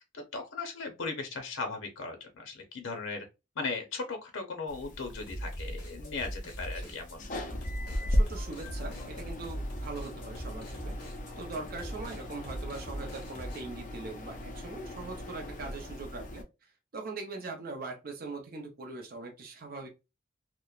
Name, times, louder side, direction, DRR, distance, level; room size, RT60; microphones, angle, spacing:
voice 1, 0.1-3.3 3.6-7.2, left 4 dB, 85° left, 4 dB, 0.6 m, -37 dB
sound 1, 4.7-16.4, equal, 40° left, 0.5 m, -37 dB
sound 2, 5.3-13.6, right 1 dB, 60° left, 1.1 m, -41 dB
voice 2, 8.1-19.9, right 3 dB, 50° right, 2 dB, 0.5 m, -41 dB
2.9 x 2.1 x 2.3 m, 0.26 s
head